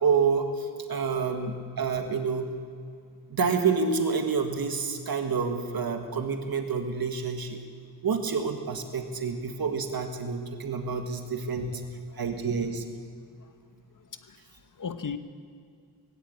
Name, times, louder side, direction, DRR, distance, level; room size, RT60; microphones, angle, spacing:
voice 1, 0.0-2.5 3.3-7.6 8.0-11.8 12.2-12.8, right 5 dB, 60° right, 5 dB, 1.8 m, -28 dB
voice 2, 14.0-15.2, left 6 dB, 50° left, 10 dB, 1.1 m, -38 dB
18.5 x 16.5 x 8.7 m, 2.2 s
wide cardioid pair, 160°, 40 cm